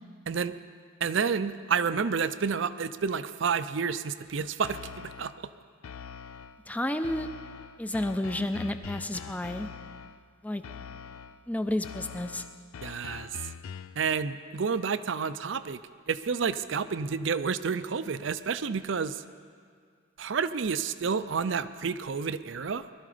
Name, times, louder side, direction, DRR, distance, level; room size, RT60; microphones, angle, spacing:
voice 1, 0.3-0.6 1.0-5.5 12.8-13.5 14.0-15.8 16.1-19.2 20.2-22.9, right 6 dB, 60° right, 14 dB, 0.5 m, -30 dB
sound 1, 4.6-5.5 5.8-6.7 7.0-10.3 10.6-11.5 11.8-14.1, left 7 dB, 90° left, 0.4 m, -43 dB
voice 2, 6.7-7.3 7.8-9.7 10.4-10.6 11.5-12.4, left 1 dB, 5° left, 9 dB, 0.5 m, -31 dB
21.5 x 12.0 x 5.0 m, 2.1 s
head